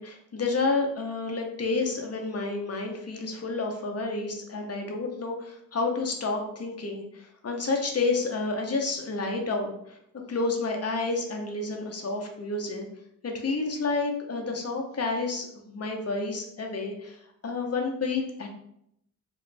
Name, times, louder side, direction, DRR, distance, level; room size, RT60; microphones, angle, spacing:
voice 1, 0.0-10.0 10.3-12.9 13.2-18.5, left 3 dB, 50° left, 2 dB, 0.7 m, -30 dB
3.1 x 2.5 x 3.2 m, 0.75 s
wide cardioid pair, 80°, 32 cm